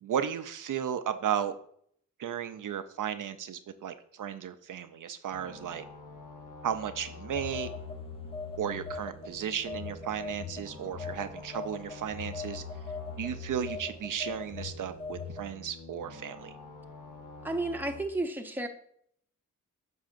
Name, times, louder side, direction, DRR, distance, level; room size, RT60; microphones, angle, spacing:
voice 1, 0.0-1.6 2.2-5.8 6.6-7.7 8.6-12.6 13.2-16.5, right 8 dB, 75° right, 10 dB, 0.5 m, -34 dB
sound 1, 5.3-18.0, left 3 dB, 75° left, 1.2 m, -48 dB
Telephone, 7.3-9.3 9.7-15.5, left 5 dB, 20° left, 0.5 m, -40 dB
voice 2, 17.4-18.7, right 2 dB, 5° right, 4 dB, 0.8 m, -32 dB
7.4 x 5.6 x 2.5 m, 0.66 s
cardioid pair, 60°, 32 cm